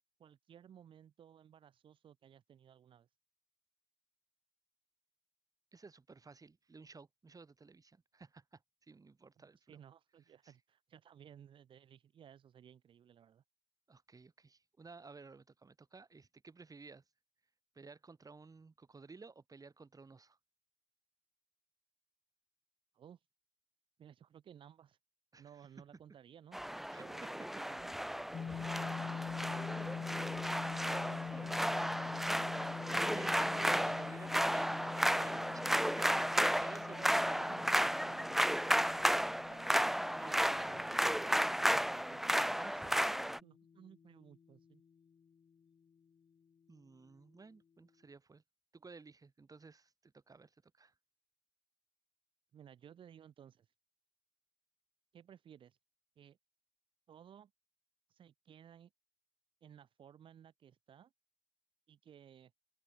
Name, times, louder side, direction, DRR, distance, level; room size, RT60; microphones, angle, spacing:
voice 1, 0.2-3.1 9.6-13.4 22.9-23.2 24.0-25.0 25.4-26.6 27.0-28.0 28.4-32.6 36.7-37.7 37.9-44.8 52.5-53.7 55.1-55.8 56.2-56.4 57.1-57.5 58.1-58.9 59.6-61.1 61.9-62.5, right 9 dB, 85° right, 4.2 m, -58 dB
voice 2, 5.7-9.8 10.4-10.5 13.9-17.0 17.7-20.4 25.3-25.7 26.9-27.5 33.1-37.5 46.7-48.4 48.7-50.9, right 4 dB, 45° right, 7.6 m, -55 dB
sound 1, 26.5-43.4, equal, 5° right, 0.6 m, -33 dB
sound 2, 28.3-44.3, left 6 dB, 65° left, 2.9 m, -46 dB
open air
cardioid pair, 55°, 9 cm